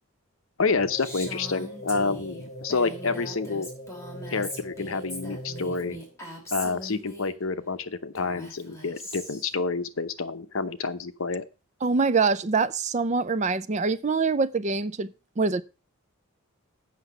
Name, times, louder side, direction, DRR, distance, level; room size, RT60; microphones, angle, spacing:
voice 1, 0.6-3.7 4.3-6.0 6.5-11.4, left 4 dB, 60° left, 0.8 m, -28 dB
sound 1, 0.8-6.2, equal, 30° left, 3.5 m, -41 dB
Female speech woman speaking, 1.0-7.3 8.2-9.5, equal, 15° left, 2.9 m, -40 dB
voice 2, 11.8-15.1 15.4-15.6, right 4 dB, 30° right, 0.4 m, -24 dB
8.1 x 5.9 x 6.6 m
head